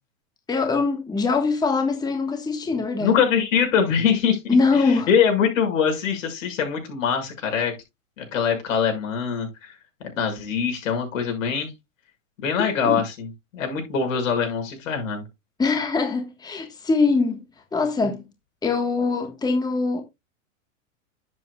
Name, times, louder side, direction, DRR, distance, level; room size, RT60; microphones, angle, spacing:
voice 1, 0.5-3.1 4.5-5.1 12.8-13.0 15.6-17.4 17.7-18.2 18.6-20.0, left 4 dB, 10° left, 1.5 m, -22 dB
voice 2, 3.0-4.4 4.7-7.7 8.2-9.7 10.1-11.7 12.4-15.2, left 7 dB, 70° left, 6.4 m, -23 dB
11.0 x 7.9 x 2.4 m
hypercardioid pair, 130°, 40 cm